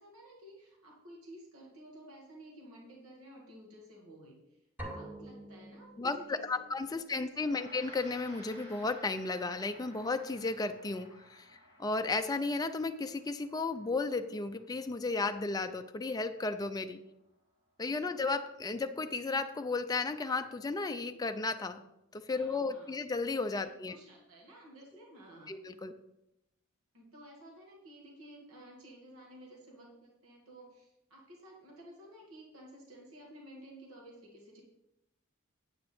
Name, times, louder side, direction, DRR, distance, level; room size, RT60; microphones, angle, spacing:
voice 1, 0.0-7.7 22.3-23.0 23.6-25.5 26.9-34.6, right 1 dB, 70° right, -1 dB, 2.3 m, -53 dB
sound 1, 4.8-6.6, right 1 dB, 10° right, 2.4 m, -46 dB
voice 2, 6.0-11.5 11.8-17.0 17.8-21.8 22.1-24.0 25.5-25.9, left 3 dB, 15° left, 7 dB, 0.4 m, -34 dB
Gong, 7.3-16.9, equal, 30° right, 2.1 m, -57 dB
9.4 x 8.8 x 3.5 m, 0.86 s
head